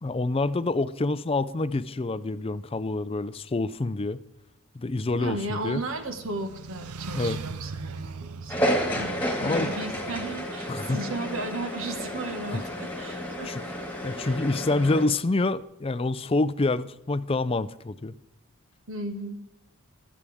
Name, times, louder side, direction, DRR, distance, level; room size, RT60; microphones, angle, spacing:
voice 1, 0.0-4.2 4.7-5.8 7.1-7.4 9.4-9.7 10.7-11.0 12.5-12.6 13.5-13.6 14.0-18.1, left 2 dB, 25° left, 14 dB, 0.4 m, -27 dB
sound 1, 4.9-10.4, right 4 dB, 85° right, 0.6 m, -40 dB
voice 2, 5.2-13.6 14.2-14.4 18.9-19.4, right 2 dB, 65° right, 6 dB, 1.7 m, -35 dB
sound 2, 8.5-15.0, equal, 10° left, 2.0 m, -31 dB
22.5 x 8.5 x 3.6 m, 0.92 s
head